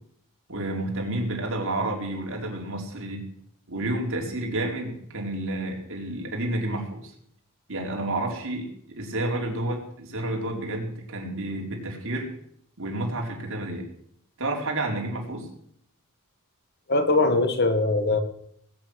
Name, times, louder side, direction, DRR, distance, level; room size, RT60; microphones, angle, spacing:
voice 1, 0.5-3.2 3.7-7.1 7.7-12.3 12.8-13.9 14.4-15.5, right 1 dB, 60° right, 1 dB, 4.4 m, -30 dB
voice 2, 16.9-18.2, left 2 dB, 50° left, 8 dB, 1.8 m, -21 dB
20.5 x 9.4 x 6.5 m, 0.68 s
head